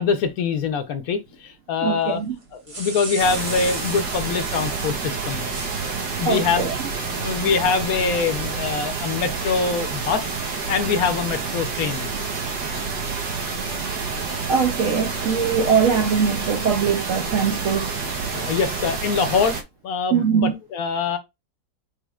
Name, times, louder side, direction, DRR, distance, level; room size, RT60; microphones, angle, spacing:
voice 1, 0.0-2.2 2.5-5.5 6.2-10.4 10.7-12.1 18.3-21.2, left 5 dB, 65° left, 1.0 m, -24 dB
voice 2, 1.8-2.4 6.3-6.7 7.4-7.6 14.5-17.9 20.1-20.5, right 6 dB, 65° right, 0.8 m, -22 dB
sound 1, 2.4-5.0 5.5-6.2, right 3 dB, 45° right, 0.4 m, -35 dB
sound 2, 3.2-19.6, right 4 dB, 90° right, 1.7 m, -28 dB
6.2 x 3.5 x 2.3 m
omnidirectional pair, 1.8 m